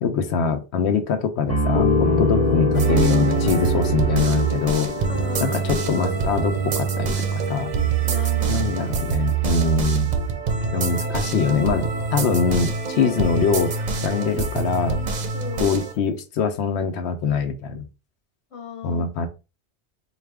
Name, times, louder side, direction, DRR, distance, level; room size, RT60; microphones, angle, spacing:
voice 1, 0.0-4.9 5.4-7.7 8.5-10.1 10.7-15.0 15.6-17.8 18.8-19.3, left 6 dB, 85° left, 7 dB, 0.9 m, -23 dB
Piano, 1.5-7.0, right 2 dB, 15° right, 0.8 m, -27 dB
Piano 2, 1.7-9.8, left 8 dB, 60° left, 0.7 m, -28 dB
sound 1, 2.7-15.9, right 6 dB, 50° right, 0.6 m, -24 dB
voice 2, 5.1-5.6 8.0-8.7 15.3-15.7 18.5-19.1, left 5 dB, 30° left, 4 dB, 0.9 m, -36 dB
4.1 x 2.4 x 3.3 m, 0.30 s
omnidirectional pair, 1.1 m